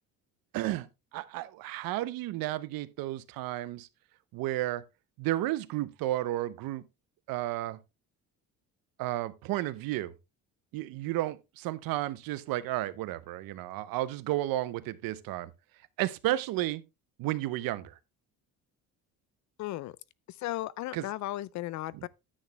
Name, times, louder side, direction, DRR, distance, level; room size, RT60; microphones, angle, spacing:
voice 1, 0.5-0.9 1.1-3.9 4.3-4.8 5.2-6.8 7.3-7.8 9.0-10.1 10.7-15.5 16.0-16.8 17.2-17.9 20.9-21.0, right 15 dB, 75° right, 0.9 m, -32 dB
voice 2, 19.6-20.0 20.3-22.1, left 15 dB, 55° left, 0.5 m, -35 dB
10.0 x 8.4 x 3.1 m
cardioid pair, 165°, 35 cm